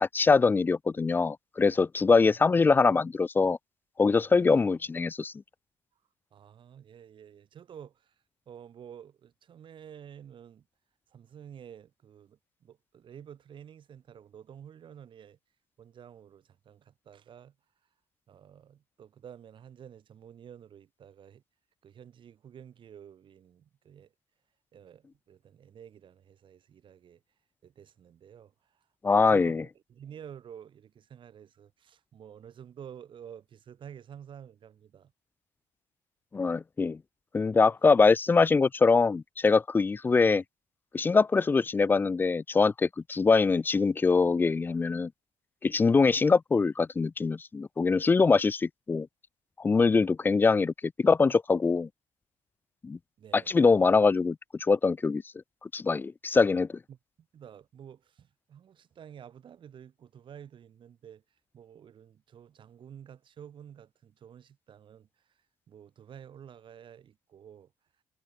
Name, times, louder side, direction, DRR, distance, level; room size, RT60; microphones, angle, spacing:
voice 1, 0.0-3.6 4.0-5.3 29.0-29.6 36.3-37.0 37.3-40.4 40.9-45.1 45.6-49.1 49.6-51.9 52.8-53.0 53.3-54.4 54.7-55.2 55.7-56.8, left 4 dB, 15° left, 0.4 m, -23 dB
voice 2, 4.3-4.6 6.3-8.1 8.5-10.6 11.1-15.4 15.8-17.5 18.3-21.4 21.8-24.1 24.7-27.2 27.6-28.5 29.1-35.1 53.2-53.6 56.9-57.0 57.3-61.2 61.5-65.1 65.7-67.7, right 9 dB, 40° right, 3.1 m, -50 dB
cardioid pair, 175°, 13 cm